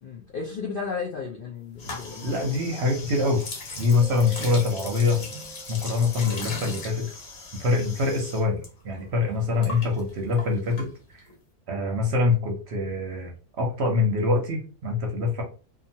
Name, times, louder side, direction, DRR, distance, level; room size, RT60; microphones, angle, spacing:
voice 1, 0.0-2.3, left 5 dB, 60° left, -2 dB, 0.5 m, -34 dB
sound 1, 1.8-8.7 8.9-11.3, left 2 dB, 80° left, 1.4 m, -38 dB
voice 2, 2.2-3.4 3.8-5.2 5.7-7.1 7.6-11.2 11.7-13.3 13.6-15.4, left 3 dB, 55° right, 1 dB, 0.8 m, -24 dB
Keyboard (musical), 4.0-6.7, right 6 dB, 10° left, 1.1 m, -44 dB
2.8 x 2.4 x 2.7 m, 0.36 s
omnidirectional pair, 1.5 m